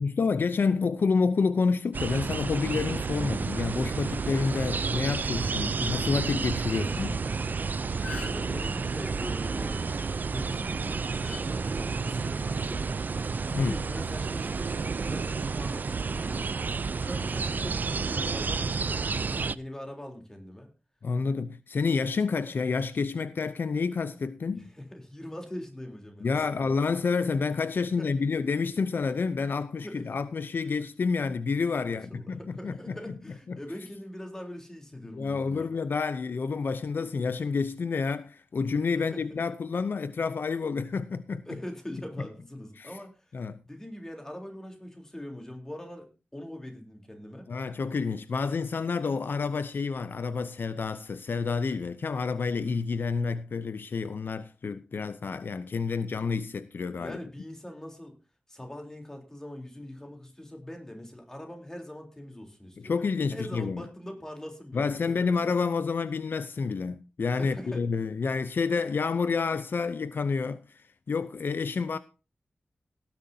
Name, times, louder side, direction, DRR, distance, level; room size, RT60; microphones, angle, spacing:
voice 1, 0.0-7.2 13.5-13.8 21.0-24.7 26.2-33.0 33.5-33.6 35.1-41.5 42.8-42.9 43.3-43.6 47.5-57.2 62.8-63.8 64.7-72.0, left 4 dB, 70° left, 0.6 m, -29 dB
sound 1, 1.9-19.6, right 4 dB, 55° right, 0.5 m, -30 dB
sound 2, 7.5-7.6 7.8-8.5 10.2-10.4 11.2-11.4 12.4-12.7, left 4 dB, 40° left, 7.4 m, -41 dB
voice 2, 8.2-13.0 13.5-16.6 17.0-20.7 24.6-26.7 28.0-28.3 29.8-30.1 31.9-35.7 39.0-39.3 41.5-47.5 57.0-58.2 58.5-63.0 63.3-65.5 67.4-67.9, left 1 dB, 15° left, 3.7 m, -42 dB
18.0 x 10.5 x 2.8 m
wide cardioid pair, 110°, 4 cm